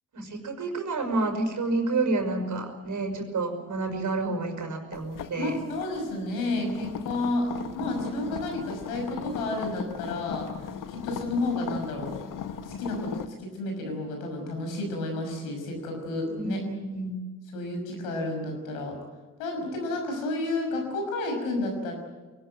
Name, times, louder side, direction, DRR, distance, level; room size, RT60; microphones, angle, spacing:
voice 1, 0.1-5.6 16.4-17.2, right 3 dB, 45° right, 4 dB, 5.8 m, -29 dB
sound 1, 4.9-13.3, left 7 dB, 50° left, 1.6 m, -38 dB
voice 2, 5.4-12.1 12.6-16.6 17.5-19.0 19.4-21.9, left 2 dB, 80° left, 3 dB, 6.0 m, -31 dB
22.5 x 19.0 x 9.0 m, 1.3 s
hypercardioid pair, 45°, 41 cm